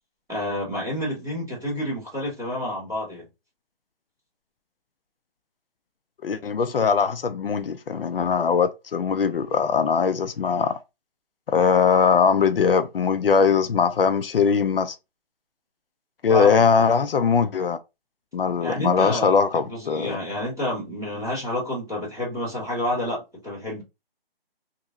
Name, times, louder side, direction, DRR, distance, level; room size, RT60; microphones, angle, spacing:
voice 1, 0.3-3.3 16.3-16.6 18.6-23.8, left 1 dB, ahead, 0.6 m, -29 dB
voice 2, 6.2-10.7 11.5-15.0 16.2-17.8 18.3-20.2, left 6 dB, 70° left, 0.5 m, -21 dB
2.8 x 2.6 x 2.6 m
hypercardioid pair, 165°, 30 cm